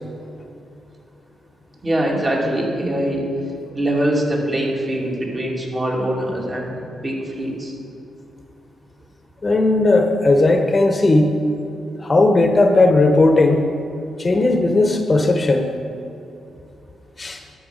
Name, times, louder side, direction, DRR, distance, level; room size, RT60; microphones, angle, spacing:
voice 1, 1.8-3.2 3.7-7.7, right 1 dB, 30° right, -2 dB, 2.8 m, -23 dB
voice 2, 9.4-11.3 12.0-13.6 14.2-15.7 17.2-17.4, left 2 dB, 35° left, 5 dB, 1.0 m, -16 dB
11.0 x 6.9 x 5.2 m, 2.6 s
supercardioid pair, 55°, 0 cm